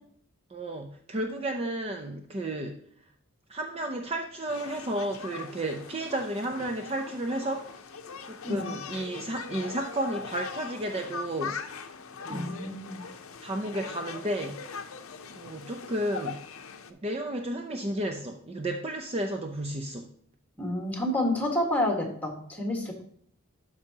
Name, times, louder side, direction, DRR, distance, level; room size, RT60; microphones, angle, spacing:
voice 1, 0.5-2.8 3.5-7.8 8.3-11.9 12.2-12.5 13.4-14.6 15.4-16.4 17.0-20.1, right 1 dB, 30° right, 4 dB, 0.5 m, -32 dB
sound 1, 4.5-16.9, left 5 dB, 70° left, 0.6 m, -41 dB
voice 2, 12.3-13.0 20.6-23.0, left 1 dB, 5° left, 1 dB, 1.5 m, -29 dB
12.5 x 4.8 x 2.8 m, 0.62 s
head